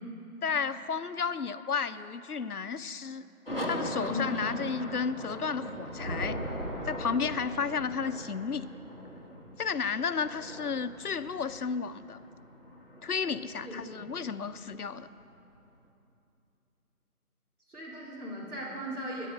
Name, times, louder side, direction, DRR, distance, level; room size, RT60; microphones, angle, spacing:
voice 1, 0.4-3.2 3.6-6.4 6.9-8.7 9.6-12.2 13.0-15.1, left 5 dB, 75° left, 12 dB, 0.7 m, -32 dB
sound 1, 3.5-15.6, equal, 40° left, 1.1 m, -42 dB
voice 2, 4.1-4.4 13.5-14.1 17.7-19.3, left 1 dB, 80° right, -5 dB, 3.5 m, -38 dB
sound 2, 5.6-8.2, equal, 35° right, 2.3 m, -38 dB
12.5 x 9.8 x 6.4 m, 2.8 s
figure-of-eight pair, 180°, 45 cm